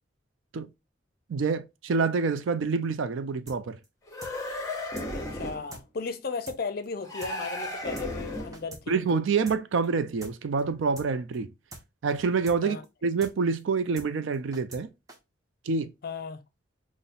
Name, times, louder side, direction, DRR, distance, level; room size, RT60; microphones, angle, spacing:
voice 1, 1.3-3.8 8.9-11.5 12.0-14.9 15.7-15.9, right 5 dB, 80° right, 0.4 m, -27 dB
sound 1, 3.5-3.6 3.8-3.9 4.2-4.3 4.6-4.7 5.0-5.1 5.3-5.4 5.7-5.8 6.1-6.2 6.5-6.6 6.8-6.9 7.2-7.3 7.6-7.7 8.0-8.1 8.3-8.8 9.1-9.2 9.5-9.6 9.8-9.9 10.2-10.3 10.6-10.7 11.0-11.1 11.3-11.4 11.7-11.8 12.1-12.2 12.5-12.6 12.8-12.9 13.2-13.3 13.6-13.7 14.0-14.1 14.3-14.8 15.1-15.2, right 2 dB, 20° right, 0.6 m, -44 dB
sound 2, 4.1-5.7 7.0-8.7, left 1 dB, 15° left, 0.8 m, -35 dB
voice 2, 5.1-9.0 12.6-12.8 16.0-16.4, left 4 dB, 50° left, 0.5 m, -35 dB
5.5 x 2.1 x 2.5 m
head